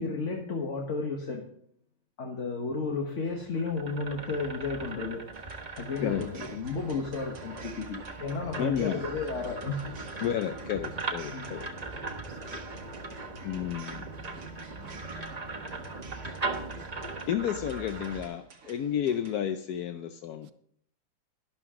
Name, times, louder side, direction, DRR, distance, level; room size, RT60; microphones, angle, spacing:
voice 1, 0.0-1.4 2.2-9.8 10.5-10.7 11.3-11.9, left 4 dB, 40° left, 1.4 m, -33 dB
sound 1, 3.3-18.3, right 3 dB, 30° right, 0.8 m, -39 dB
sound 2, 5.3-19.4, right 5 dB, 45° right, 1.4 m, -52 dB
voice 2, 8.6-9.0 10.2-11.7 13.4-14.0 17.3-20.5, left 9 dB, 70° left, 0.9 m, -31 dB
voice 3, 12.1-12.8 20.4-20.5, right 11 dB, 75° right, 1.4 m, -56 dB
12.0 x 11.5 x 3.7 m
omnidirectional pair, 2.2 m